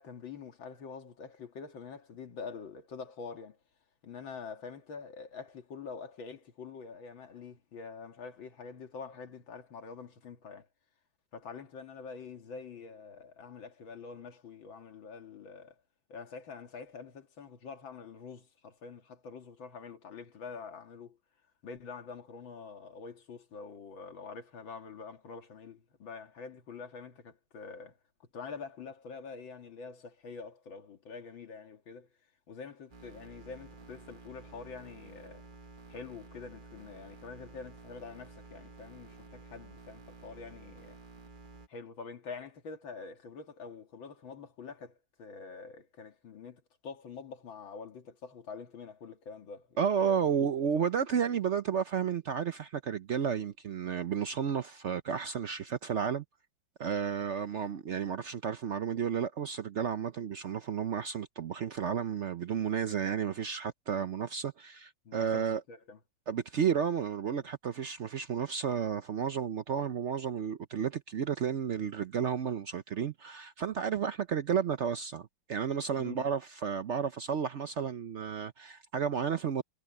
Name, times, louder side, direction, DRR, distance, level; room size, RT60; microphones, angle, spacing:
voice 1, 0.0-3.6 4.0-10.7 11.3-15.8 16.1-21.2 21.6-28.0 28.3-32.1 32.5-35.4 35.9-41.0 41.7-50.9 65.0-66.0 67.4-67.5 76.0-76.3, left 5 dB, 75° left, 2.7 m, -46 dB
sound 1, 32.9-41.7, right 4 dB, 30° right, 1.1 m, -52 dB
voice 2, 49.8-56.2 56.8-65.6 66.3-79.6, right 7 dB, 75° right, 0.6 m, -32 dB
omnidirectional pair, 2.1 m